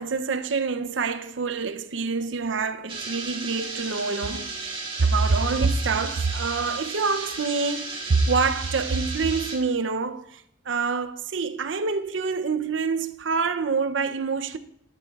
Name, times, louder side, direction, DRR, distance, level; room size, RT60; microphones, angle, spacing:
voice 1, 0.0-14.6, right 4 dB, 70° right, 0.6 m, -26 dB
sound 1, 2.9-9.6, right 3 dB, 25° right, 1.9 m, -34 dB
12.5 x 11.5 x 2.4 m
head